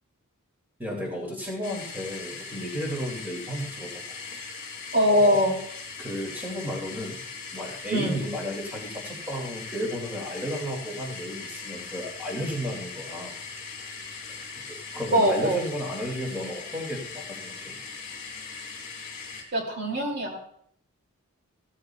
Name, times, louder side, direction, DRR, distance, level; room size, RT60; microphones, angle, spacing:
voice 1, 0.8-4.0 4.5-4.6 5.1-5.4 6.0-7.2 7.5-13.3 14.3-14.5 14.9-17.8, equal, 10° right, -2 dB, 2.4 m, -33 dB
sound 1, 1.6-19.4, left 5 dB, 35° left, 3.7 m, -40 dB
voice 2, 4.9-5.6 7.9-8.2 15.1-15.6 19.5-20.4, equal, 50° right, 1 dB, 2.6 m, -22 dB
16.0 x 13.5 x 2.3 m, 0.67 s
head